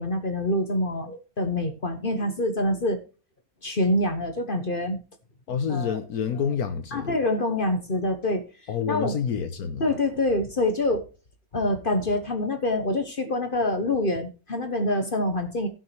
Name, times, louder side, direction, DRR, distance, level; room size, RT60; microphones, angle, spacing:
voice 1, 0.0-3.0 3.6-5.0 5.7-6.0 6.9-8.4 8.9-9.1 9.8-11.1 11.5-15.7, left 1 dB, 40° left, 1.1 m, -26 dB
voice 2, 5.5-7.2 8.7-9.9, left 7 dB, 80° left, 1.5 m, -28 dB
16.5 x 6.1 x 3.3 m
omnidirectional pair, 1.5 m